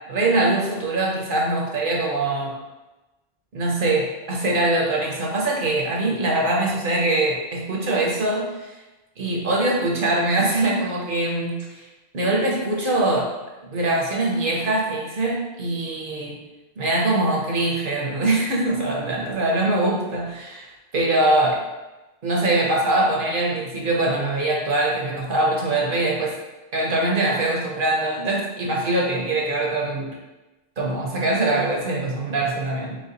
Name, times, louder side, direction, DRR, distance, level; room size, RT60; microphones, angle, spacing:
voice 1, 0.1-2.5 3.5-8.8 9.2-11.9 12.1-13.3 13.7-16.4 16.8-21.6 22.2-26.3 26.7-30.1 30.8-33.0, right 2 dB, 50° right, -2 dB, 0.9 m, -23 dB
4.9 x 2.3 x 3.9 m, 1.1 s
omnidirectional pair, 1.2 m